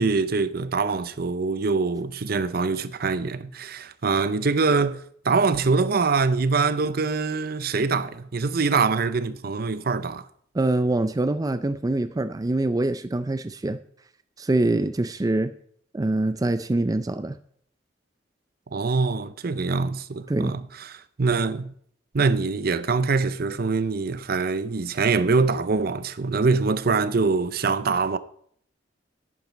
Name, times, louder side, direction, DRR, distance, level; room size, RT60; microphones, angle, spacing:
voice 1, 0.0-10.3 18.7-21.7 22.1-28.2, right 4 dB, 55° right, 0.6 m, -24 dB
voice 2, 10.5-13.8 14.4-15.5 15.9-17.4 20.3-20.6, right 2 dB, 20° right, 0.4 m, -24 dB
11.0 x 9.5 x 4.5 m
head